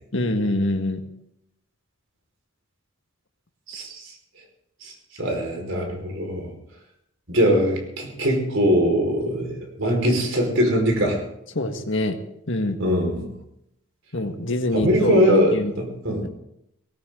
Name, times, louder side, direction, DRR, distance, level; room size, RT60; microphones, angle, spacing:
voice 1, 0.1-1.0 11.5-12.2 12.5-12.8 14.1-15.7, left 1 dB, 55° left, 5 dB, 1.9 m, -24 dB
voice 2, 3.7-4.1 4.8-6.5 7.3-11.2 12.8-13.2 14.7-16.3, equal, 60° right, 2 dB, 5.1 m, -22 dB
18.5 x 18.5 x 3.9 m, 0.78 s
head